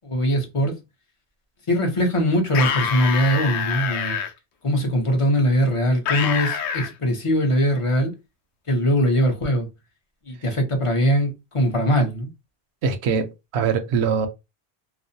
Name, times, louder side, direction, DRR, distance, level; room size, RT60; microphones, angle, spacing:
voice 1, 0.0-0.8 1.7-4.2 4.6-8.1 8.7-9.7 10.3-12.3, equal, 35° left, 0.6 m, -21 dB
sound 1, 2.5-4.3 6.1-6.9, left 7 dB, 85° left, 0.9 m, -25 dB
voice 2, 12.8-14.3, right 6 dB, 80° right, 0.8 m, -23 dB
2.5 x 2.0 x 2.6 m
omnidirectional pair, 1.1 m